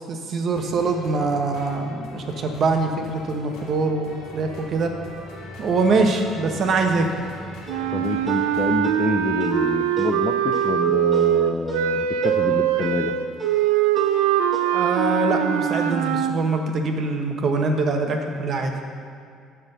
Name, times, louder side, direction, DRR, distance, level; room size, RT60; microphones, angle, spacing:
voice 1, 0.0-4.9 5.6-7.1 14.7-18.7, right 3 dB, 50° right, 4 dB, 0.9 m, -23 dB
sound 1, 0.5-8.6, left 1 dB, 85° left, 1.7 m, -41 dB
sound 2, 7.7-14.7, right 2 dB, 20° right, 1.3 m, -37 dB
sound 3, 7.7-16.4, right 10 dB, 90° right, 0.3 m, -22 dB
voice 2, 7.9-13.1, left 4 dB, 40° left, 9 dB, 0.4 m, -27 dB
7.0 x 4.5 x 6.6 m, 2.3 s
supercardioid pair, 85°, 0 cm